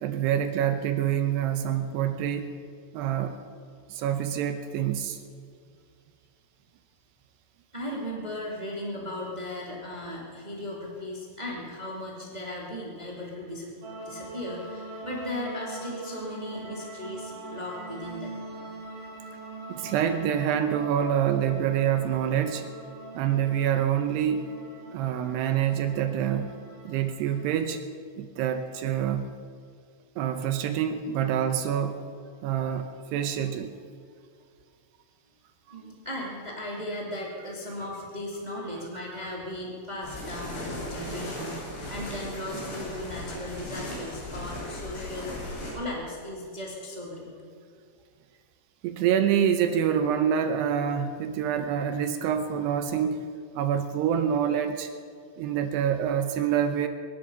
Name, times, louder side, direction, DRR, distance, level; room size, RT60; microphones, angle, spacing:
voice 1, 0.0-2.5 2.9-3.4 3.9-5.2 19.7-22.6 23.2-24.4 24.9-26.6 26.9-27.8 28.2-29.3 30.2-32.0 32.4-33.7 38.9-39.1 48.8-53.3 53.6-54.9 55.4-56.9, right 9 dB, 80° right, 8 dB, 2.6 m, -26 dB
voice 2, 7.7-13.7 14.0-18.4 19.8-20.0 35.7-47.3, left 1 dB, 25° right, -3 dB, 0.8 m, -37 dB
sound 1, 13.8-27.6, right 2 dB, 50° right, 3.2 m, -42 dB
sound 2, 40.0-45.7, left 1 dB, 70° left, 6.3 m, -37 dB
23.5 x 11.0 x 5.5 m, 2.2 s
omnidirectional pair, 5.5 m